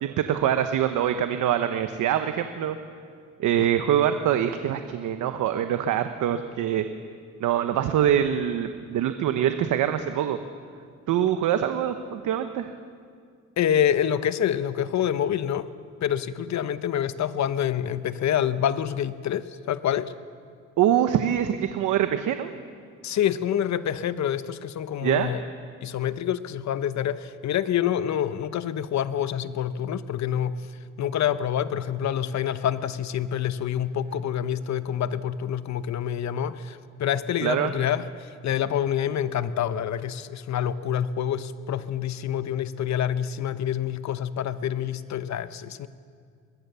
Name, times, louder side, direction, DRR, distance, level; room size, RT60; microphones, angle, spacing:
voice 1, 0.0-2.8 3.4-6.8 7.4-10.4 11.1-12.7 20.8-22.5 25.0-25.3 37.4-37.7, right 10 dB, 80° right, 8 dB, 1.1 m, -24 dB
voice 2, 13.6-15.7 16.0-20.1 23.0-25.4 25.8-30.6 31.0-45.9, left 9 dB, 65° left, 13 dB, 1.0 m, -27 dB
23.0 x 21.0 x 6.9 m, 2.1 s
cardioid pair, 90°, 30 cm